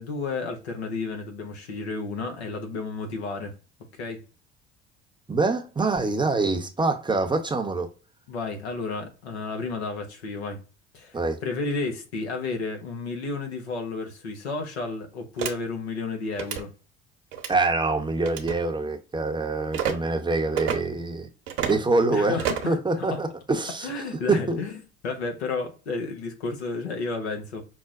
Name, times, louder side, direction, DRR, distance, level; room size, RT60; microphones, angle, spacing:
voice 1, 0.0-3.5 4.0-4.2 8.3-10.6 10.9-16.7 22.1-23.2 23.8-27.6, left 3 dB, 80° left, 0.9 m, -32 dB
voice 2, 5.3-7.9 11.1-11.4 17.5-21.3 21.7-22.4 22.7-23.9 24.3-24.6, right 3 dB, 15° right, 0.7 m, -25 dB
sound 1, 15.4-15.5 16.3-16.6 17.3-17.6 18.2-18.6 19.7-19.9 20.6-20.8 21.5-21.8 22.4-22.7, right 8 dB, 65° right, 0.9 m, -28 dB
5.8 x 2.1 x 2.4 m
hypercardioid pair, 65°, 32 cm